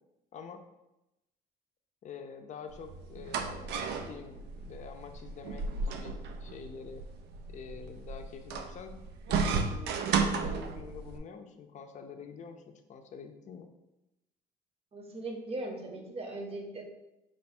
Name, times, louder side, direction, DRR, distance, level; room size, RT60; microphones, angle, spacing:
voice 1, 2.0-7.0 7.5-8.9 9.3-13.7, left 6 dB, 45° left, 6 dB, 0.5 m, -47 dB
sound 1, 2.7-11.2, right 5 dB, 75° right, 0.5 m, -34 dB
voice 2, 14.9-16.8, right 2 dB, 35° right, 3 dB, 0.8 m, -39 dB
4.8 x 2.3 x 4.2 m, 0.95 s
cardioid pair, 110°, 17 cm